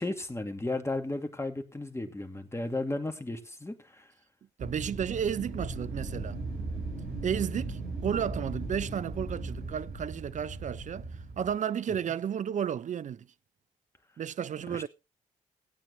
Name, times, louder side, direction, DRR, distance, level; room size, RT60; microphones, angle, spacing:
voice 1, 0.0-4.1 14.7-14.8, left 2 dB, 15° left, 2.4 m, -34 dB
voice 2, 4.6-6.4 7.2-11.0 11.4-13.3 14.2-14.9, right 8 dB, 45° right, 0.6 m, -32 dB
Wind, 4.6-11.5, right 3 dB, 60° right, 4.3 m, -37 dB
16.5 x 9.0 x 3.1 m
hypercardioid pair, 40°, 17 cm